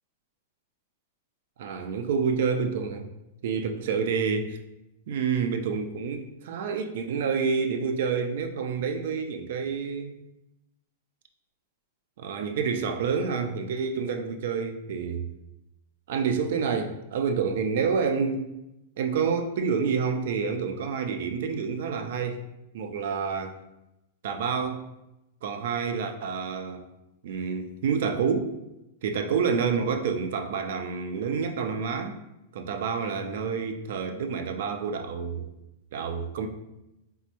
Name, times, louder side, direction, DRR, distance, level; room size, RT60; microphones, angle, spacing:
voice 1, 1.6-3.1 3.4-4.6 5.1-10.2 12.2-15.3 16.1-18.5 19.0-22.4 22.7-23.6 24.2-24.9 25.4-26.8 27.2-28.5 29.0-32.2 32.5-35.5 35.9-36.5, right 5 dB, 70° right, 7 dB, 0.3 m, -28 dB
3.3 x 2.0 x 2.8 m, 0.91 s
hypercardioid pair, 130°, 0 cm